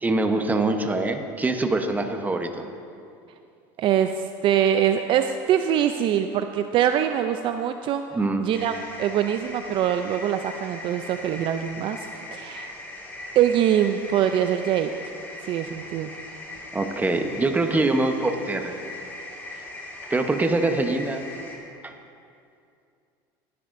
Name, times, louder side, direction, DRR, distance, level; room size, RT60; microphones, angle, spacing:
voice 1, 0.0-2.7 8.1-8.4 16.7-18.8 20.1-21.2 21.8-21.9, right 2 dB, 15° right, 5 dB, 0.9 m, -24 dB
voice 2, 3.8-8.1 8.4-12.7 13.3-15.1 15.4-16.1, right 10 dB, 50° right, 8 dB, 0.4 m, -23 dB
sound 1, 8.5-21.6, left 2 dB, 20° left, 2.0 m, -39 dB
18.0 x 10.5 x 2.6 m, 2.5 s
supercardioid pair, 105°, 11 cm